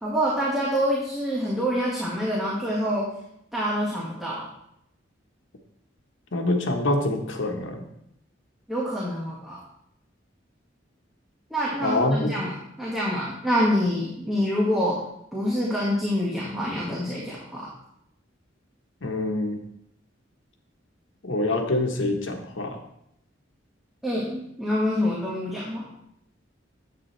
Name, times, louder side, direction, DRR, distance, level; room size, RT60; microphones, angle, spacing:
voice 1, 0.0-3.1 3.5-4.5 8.7-9.6 11.5-15.0 15.3-17.7 24.0-25.9, equal, ahead, -7 dB, 1.8 m, -26 dB
voice 2, 6.3-7.9 11.8-12.3 19.0-19.6 21.2-22.8, left 2 dB, 85° left, 4 dB, 1.3 m, -25 dB
9.9 x 8.3 x 3.3 m, 0.75 s
head